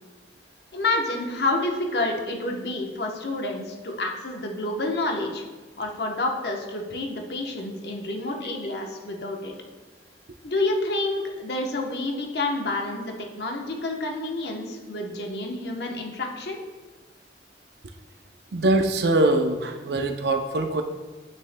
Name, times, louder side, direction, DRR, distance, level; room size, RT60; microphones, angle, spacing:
voice 1, 0.7-5.4 5.8-9.5 10.4-16.6, left 2 dB, 65° left, 2 dB, 0.9 m, -29 dB
voice 2, 18.5-20.8, right 2 dB, 65° right, 6 dB, 0.6 m, -22 dB
8.8 x 6.2 x 2.2 m, 1.3 s
head